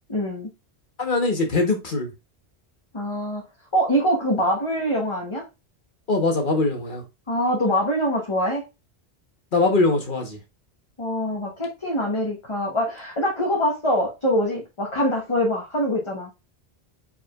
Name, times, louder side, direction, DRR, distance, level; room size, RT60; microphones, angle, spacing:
voice 1, 0.1-0.5 2.9-3.4 3.7-5.4 7.3-8.6 11.0-16.3, equal, 30° left, 1.2 m, -24 dB
voice 2, 1.0-2.1 6.1-7.0 9.5-10.4, left 3 dB, 50° left, 1.4 m, -22 dB
4.9 x 4.4 x 2.4 m
omnidirectional pair, 1.1 m